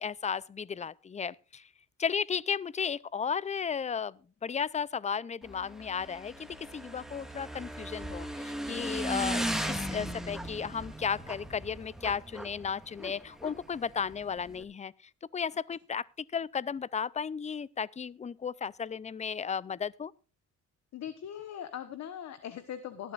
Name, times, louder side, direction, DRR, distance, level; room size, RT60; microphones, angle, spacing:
voice 1, 0.0-1.6 2.0-14.9 15.3-16.1 16.3-20.1, left 6 dB, 25° left, 0.5 m, -34 dB
Motorcycle / Engine, 5.4-14.6, right 1 dB, ahead, 1.8 m, -37 dB
voice 2, 20.9-23.1, left 9 dB, 65° left, 1.2 m, -40 dB
18.5 x 12.0 x 2.5 m
cardioid pair, 90°, 30 cm